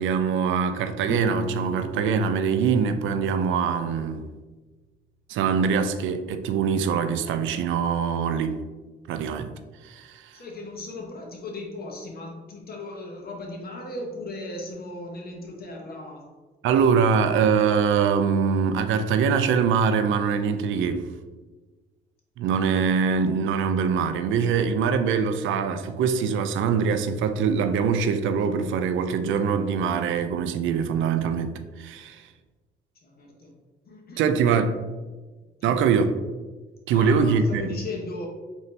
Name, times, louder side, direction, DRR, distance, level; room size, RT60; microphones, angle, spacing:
voice 1, 0.0-4.2 5.3-8.6 9.1-9.5 9.8-10.2 16.6-21.1 22.4-32.3 34.2-34.8 35.6-36.1 36.9-37.6, right 6 dB, 80° right, 0.4 m, -23 dB
Piano, 1.1-4.0, equal, 5° left, 0.8 m, -35 dB
voice 2, 10.3-16.4 33.0-33.5 33.8-34.6 35.6-35.8 36.9-38.3, left 2 dB, 50° left, 0.9 m, -37 dB
4.0 x 2.7 x 3.2 m
cardioid pair, 90°, 20 cm